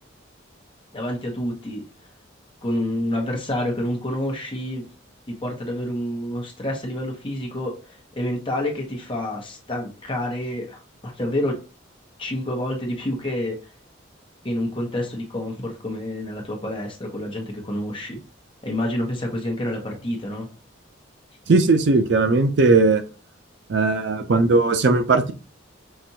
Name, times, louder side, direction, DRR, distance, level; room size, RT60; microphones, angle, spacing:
voice 1, 0.9-1.8 2.6-4.8 5.3-7.7 8.2-11.6 12.2-13.6 14.4-18.2 18.6-20.5, left 1 dB, 25° left, 1 dB, 1.0 m, -28 dB
voice 2, 21.5-23.0 23.7-25.3, right 3 dB, 60° right, 9 dB, 0.5 m, -18 dB
5.8 x 2.6 x 2.7 m, 0.34 s
head